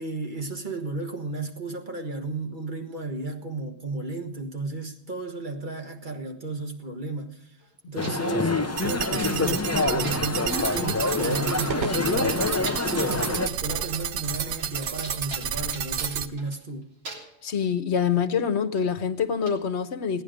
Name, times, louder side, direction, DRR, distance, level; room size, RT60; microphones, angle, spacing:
voice 1, 0.0-7.6 7.9-16.9, right 3 dB, 45° right, 1.8 m, -34 dB
sound 1, 7.6-7.7 8.0-8.7 9.2-9.5 9.8-10.8 11.1-11.2 11.6-11.7 11.9-13.0 13.5-14.0 14.3-16.7 17.0-17.4 18.7-18.9 19.5-19.6, right 2 dB, 65° right, 2.6 m, -42 dB
sound 2, 8.0-13.5, left 3 dB, 15° left, 0.7 m, -26 dB
sound 3, 8.8-16.3, right 8 dB, 85° right, 1.0 m, -31 dB
voice 2, 17.4-20.2, left 7 dB, 75° left, 1.3 m, -25 dB
17.0 x 10.0 x 5.1 m
omnidirectional pair, 1.1 m